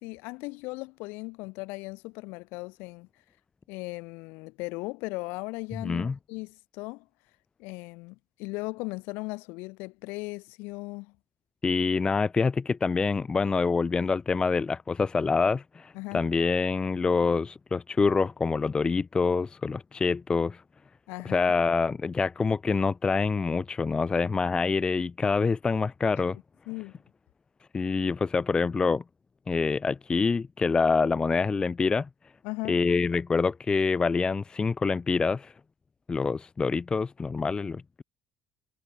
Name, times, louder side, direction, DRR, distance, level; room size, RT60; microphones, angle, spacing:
voice 1, 0.0-3.1 3.7-7.1 7.6-11.1 15.9-16.3 21.1-21.5 26.7-27.0 32.4-32.8, left 25 dB, 65° left, 2.3 m, -37 dB
voice 2, 5.8-6.2 11.6-20.6 21.3-26.4 27.7-29.0 29.5-32.1 32.7-35.5 36.1-38.0, left 4 dB, 25° left, 0.3 m, -26 dB
figure-of-eight pair, 50°, 4 cm